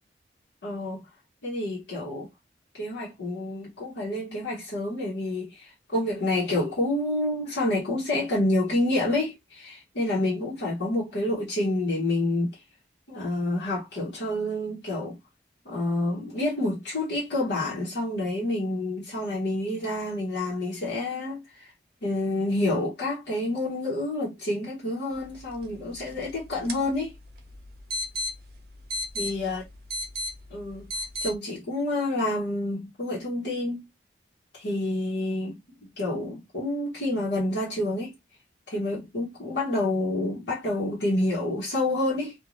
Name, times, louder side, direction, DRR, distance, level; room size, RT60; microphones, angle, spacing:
voice 1, 0.6-1.0 1.4-2.3 2.7-12.6 13.1-15.2 15.6-21.7 22.0-27.1 29.1-29.6 30.5-30.9 31.2-33.9 34.5-38.1 38.7-42.3, left 1 dB, 80° left, 1.0 m, -28 dB
sound 1, 25.1-31.3, left 1 dB, 55° right, 0.6 m, -36 dB
2.5 x 2.3 x 3.0 m
head